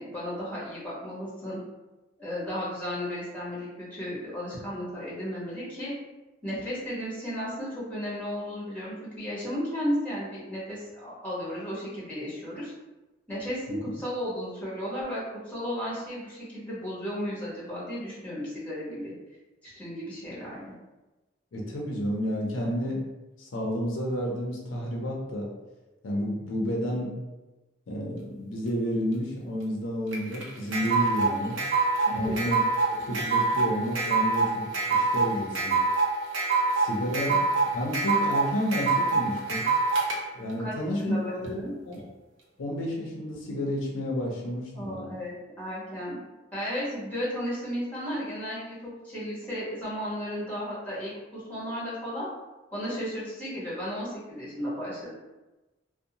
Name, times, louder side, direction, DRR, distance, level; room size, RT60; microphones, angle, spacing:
voice 1, 0.0-1.6 2.2-5.9 6.4-12.7 13.3-19.1 19.6-20.7 32.1-32.4 40.6-41.7 44.7-46.2 46.5-52.3 52.7-55.1, equal, 10° left, -8 dB, 1.0 m, -34 dB
voice 2, 21.5-23.1 23.4-25.5 26.0-27.1 27.9-31.6 32.1-32.6 33.0-34.6 34.9-35.8 36.8-37.4 37.7-39.7 40.3-41.6 41.9-42.0 42.6-45.1, equal, 85° left, -1 dB, 0.5 m, -31 dB
sound 1, 30.1-40.2, right 3 dB, 85° right, 0.6 m, -25 dB
2.6 x 2.1 x 2.8 m, 1.1 s
head